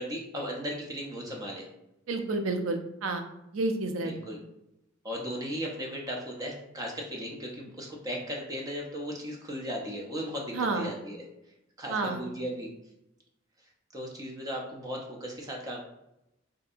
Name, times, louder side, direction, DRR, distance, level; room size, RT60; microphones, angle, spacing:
voice 1, 0.0-1.6 4.0-4.4 5.0-11.2 11.8-12.7 13.9-15.8, equal, 20° right, -1 dB, 0.4 m, -36 dB
voice 2, 2.1-3.2 3.5-4.1 10.5-10.9 11.9-12.2, right 3 dB, 80° right, 5 dB, 0.4 m, -30 dB
2.6 x 2.6 x 2.4 m, 0.86 s
head